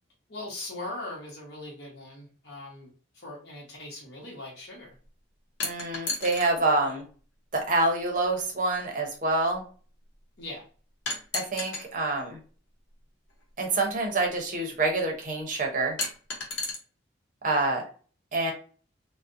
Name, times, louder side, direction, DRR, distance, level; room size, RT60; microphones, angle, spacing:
voice 1, 0.3-4.9 6.8-7.0 10.4-10.6, left 2 dB, 60° left, -3 dB, 0.9 m, -40 dB
sound 1, 5.6-6.5 7.7-7.8 11.1-11.9 13.3-13.4 16.0-16.8, left 3 dB, 90° left, 0.7 m, -32 dB
voice 2, 5.6-7.0 7.5-9.6 11.3-12.4 13.6-16.0 17.4-17.8 18.3-18.5, right 2 dB, 45° right, 2 dB, 0.7 m, -27 dB
2.4 x 2.1 x 2.5 m, 0.39 s
head